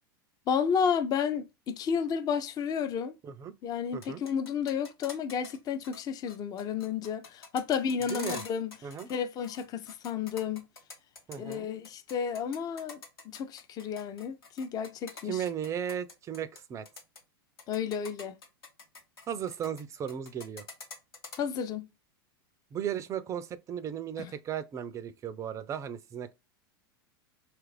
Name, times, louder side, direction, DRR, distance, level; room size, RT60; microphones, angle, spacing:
voice 1, 0.5-3.1 3.6-8.8 9.1-10.7 11.4-13.0 13.2-15.4 17.7-18.4 21.4-21.9 24.2-24.3, left 7 dB, 30° left, 0.5 m, -32 dB
voice 2, 3.2-3.5 3.9-4.2 8.1-8.4 8.8-9.1 11.3-11.7 15.3-16.9 19.3-20.7 22.7-26.3, right 9 dB, 25° right, 0.4 m, -36 dB
sound 1, 3.9-5.6 5.8-6.0 6.3-9.2 9.4-11.6 11.8-16.6 16.9-17.2 17.6-19.8 20.1-21.4, left 4 dB, 85° left, 1.1 m, -45 dB
2.8 x 2.5 x 3.2 m
hypercardioid pair, 105°, 12 cm